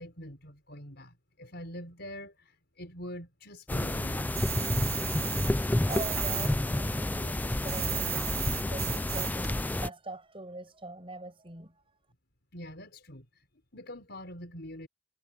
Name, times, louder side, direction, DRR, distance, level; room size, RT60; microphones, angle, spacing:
voice 1, 0.0-4.3 12.5-13.5 13.7-14.9, left 1 dB, 60° left, 5.6 m, -44 dB
sound 1, 3.7-9.9, left 1 dB, 10° left, 0.4 m, -30 dB
sound 2, 4.3-6.5 6.8-9.5, right 14 dB, 55° right, 1.3 m, -35 dB
voice 2, 5.9-11.8, right 2 dB, 30° right, 7.4 m, -42 dB
head